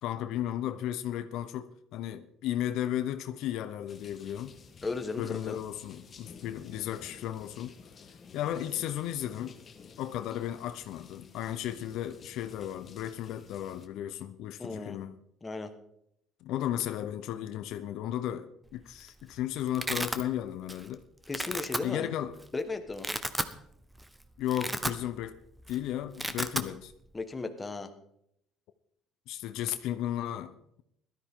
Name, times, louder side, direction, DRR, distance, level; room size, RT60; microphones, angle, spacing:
voice 1, 0.0-4.6 5.2-7.7 8.3-9.6 10.0-15.2 16.4-21.0 21.8-22.4 24.4-25.4 25.7-26.9 29.3-30.8, left 11 dB, 70° left, 0.8 m, -34 dB
sound 1, 3.9-13.9, left 5 dB, 35° left, 1.4 m, -53 dB
voice 2, 4.8-5.6 14.6-15.0 15.4-15.7 21.3-22.1 22.5-23.1 27.1-27.9, left 3 dB, 15° left, 1.4 m, -36 dB
Domestic sounds home sounds, 18.7-19.1 19.4-20.2 20.7-20.9 21.2-21.8 22.4-22.5 22.9-23.5 24.0-24.1 24.4-25.3 25.6-25.8 26.0-26.7, right 1 dB, 10° right, 0.9 m, -33 dB
17.0 x 13.0 x 3.8 m
cardioid pair, 110°, 0 cm